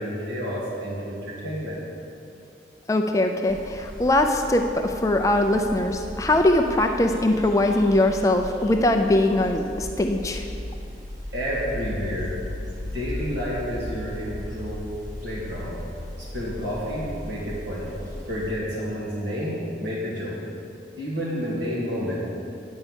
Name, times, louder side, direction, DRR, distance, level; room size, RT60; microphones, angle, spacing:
voice 1, 0.0-1.8 11.3-12.4 12.8-14.8 15.2-15.8 16.2-17.9 18.3-20.4 21.0-22.2, equal, 75° right, -7 dB, 2.3 m, -30 dB
voice 2, 2.9-10.4, left 1 dB, 15° left, 4 dB, 0.4 m, -21 dB
sound 1, 3.5-18.5, left 1 dB, 45° right, 1.8 m, -37 dB
9.8 x 5.5 x 8.0 m, 2.7 s
head